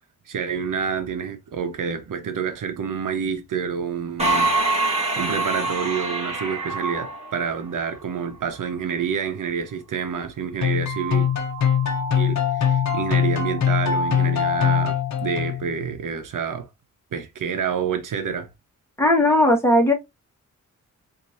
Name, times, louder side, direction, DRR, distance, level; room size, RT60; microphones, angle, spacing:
voice 1, 0.3-4.5 5.2-11.3 12.1-16.7 17.1-18.5, right 7 dB, 85° right, 1.0 m, -28 dB
sound 1, 4.2-7.9, right 2 dB, 20° right, 2.1 m, -25 dB
sound 2, 10.6-15.8, left 7 dB, 60° left, 0.9 m, -22 dB
voice 2, 19.0-19.9, left 1 dB, 10° left, 1.7 m, -17 dB
4.3 x 2.9 x 2.6 m
cardioid pair, 85°, 31 cm